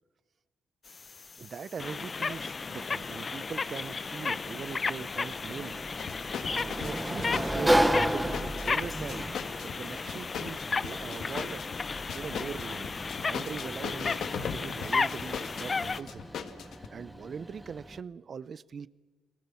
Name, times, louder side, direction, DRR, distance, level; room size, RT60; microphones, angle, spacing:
sound 1, 0.9-16.0, left 4 dB, 35° left, 0.7 m, -34 dB
voice 1, 1.4-5.8 6.5-9.4 9.8-11.6 12.1-12.9 13.2-16.3 16.9-18.9, right 6 dB, 45° right, 19 dB, 0.7 m, -41 dB
Sliding door, 5.4-18.0, right 1 dB, 5° right, 1.1 m, -34 dB
sound 2, 6.0-16.9, left 7 dB, 65° left, 1.8 m, -39 dB
29.5 x 19.5 x 7.1 m, 1.3 s
cardioid pair, 90°, 0 cm